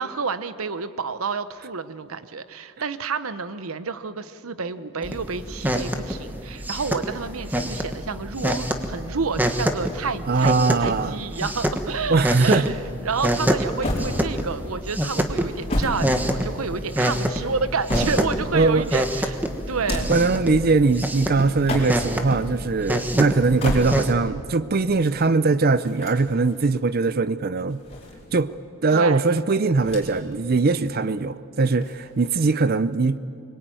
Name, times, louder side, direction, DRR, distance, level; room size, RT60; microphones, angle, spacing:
voice 1, 0.0-20.1 28.9-29.2, right 5 dB, 85° right, 1.0 m, -29 dB
sound 1, 5.0-24.1, equal, 10° right, 1.3 m, -27 dB
voice 2, 10.3-11.2 12.1-12.7 18.5-18.8 20.1-27.8 28.3-28.5 28.8-33.2, right 3 dB, 45° right, 0.5 m, -21 dB
sound 2, 13.8-14.6 15.4-16.8 17.4-18.5 19.7-20.3 21.5-22.2 23.4-24.3 25.8-26.7 27.6-28.6 29.8-30.4 30.7-30.8 31.7-32.5, left 1 dB, 30° left, 4.8 m, -31 dB
24.5 x 22.0 x 9.1 m
head